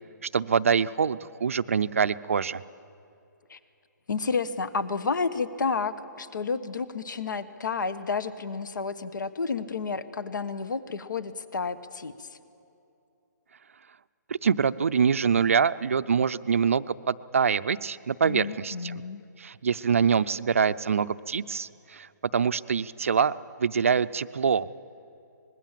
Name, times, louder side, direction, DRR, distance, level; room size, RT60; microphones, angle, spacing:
voice 1, 0.3-2.6 14.3-19.0 19.4-23.3 23.6-24.7, right 6 dB, 45° right, 14 dB, 0.5 m, -25 dB
voice 2, 4.1-12.3 18.2-19.2, left 5 dB, 75° left, 13 dB, 1.2 m, -31 dB
25.0 x 21.0 x 7.5 m, 2.7 s
hypercardioid pair, 180°, 10 cm